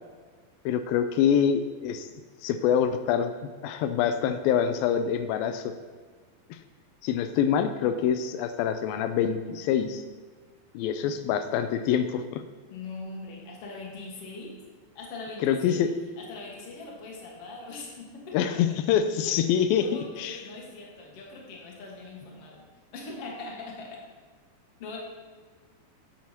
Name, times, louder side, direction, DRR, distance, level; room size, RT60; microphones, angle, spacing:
voice 1, 0.7-2.1 2.4-3.3 3.6-5.7 6.5-6.6 7.0-10.0 10.7-12.4 15.4-15.9 18.3-19.9 20.2-20.4, left 8 dB, 85° left, 9 dB, 2.4 m, -25 dB
voice 2, 12.7-14.6 14.9-15.8 16.2-18.5 19.2-19.4 19.8-22.6 22.9-24.0 24.8-25.0, left 3 dB, 50° left, -2 dB, 2.4 m, -41 dB
8.4 x 8.0 x 5.8 m, 1.5 s
omnidirectional pair, 4.1 m